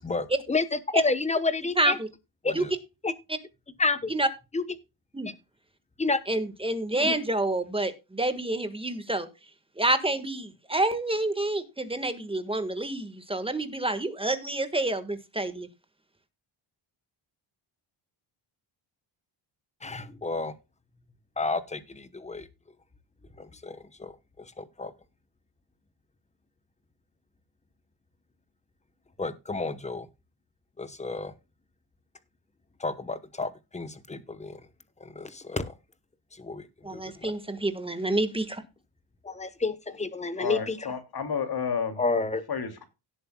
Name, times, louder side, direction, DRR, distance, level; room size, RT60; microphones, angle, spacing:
voice 1, 0.0-2.0 2.4-2.7 3.0-3.1 3.8-4.1 4.5-4.6 6.0-6.2 7.0-7.2 19.8-20.5 21.4-22.5 23.4-24.1 24.6-24.9 29.2-30.1 30.8-31.3 32.8-34.6 35.0-35.7 36.4-36.7 36.9-37.3 39.2-40.9 42.0-42.4, left 3 dB, 15° left, 1.0 m, -30 dB
voice 2, 1.8-2.1 2.5-2.6 4.1-4.3 5.1-5.3 6.3-9.3 9.8-15.7 36.8-38.6, right 2 dB, 10° right, 1.4 m, -28 dB
voice 3, 40.4-42.0 42.5-42.9, left 6 dB, 50° left, 2.5 m, -31 dB
17.0 x 7.9 x 2.2 m
cardioid pair, 130°, 50 cm